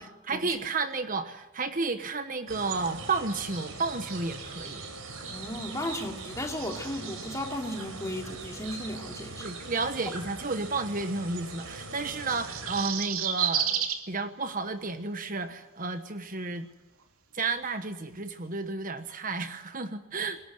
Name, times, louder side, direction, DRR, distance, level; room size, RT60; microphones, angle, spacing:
voice 1, 0.0-4.8 9.4-16.7 17.3-20.4, right 3 dB, 40° right, 9 dB, 1.2 m, -32 dB
sound 1, 2.5-12.9, right 3 dB, 75° right, 4.7 m, -41 dB
voice 2, 5.3-9.4, left 1 dB, 15° left, 2 dB, 3.0 m, -35 dB
sound 2, 12.2-14.0 15.4-15.5, right 9 dB, 90° right, 2.6 m, -29 dB
21.0 x 18.5 x 9.3 m, 1.1 s
head